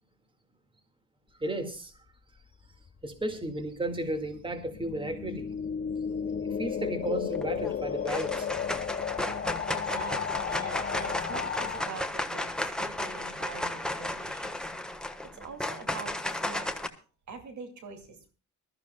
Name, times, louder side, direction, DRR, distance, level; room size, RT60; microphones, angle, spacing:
voice 1, 1.4-1.9 3.0-5.5 6.4-8.5, right 1 dB, 15° right, 7 dB, 2.0 m, -34 dB
sound 1, 2.5-11.8, left 7 dB, 40° left, 0.7 m, -34 dB
sound 2, 7.3-7.7 8.0-16.9, left 1 dB, 5° left, 1.4 m, -34 dB
voice 2, 9.7-14.7 15.0-16.7 17.3-18.3, right 4 dB, 70° right, 6 dB, 2.5 m, -44 dB
21.5 x 13.5 x 2.3 m, 0.34 s
cardioid pair, 90°, 30 cm